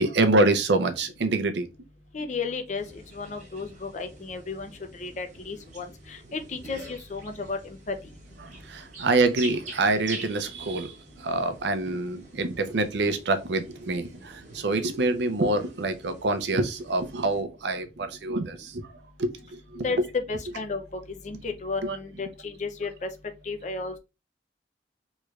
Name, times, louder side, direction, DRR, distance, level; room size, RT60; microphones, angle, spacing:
voice 1, 0.0-1.7 8.7-10.9 11.2-18.8 19.2-20.1 21.8-22.0, right 2 dB, 70° right, 0.5 m, -26 dB
voice 2, 2.1-8.0 19.8-20.8 21.1-23.1 23.4-24.0, left 4 dB, 40° left, 0.5 m, -33 dB
sound 1, 2.7-17.4, right 2 dB, 40° right, 0.9 m, -46 dB
3.2 x 3.0 x 2.3 m
head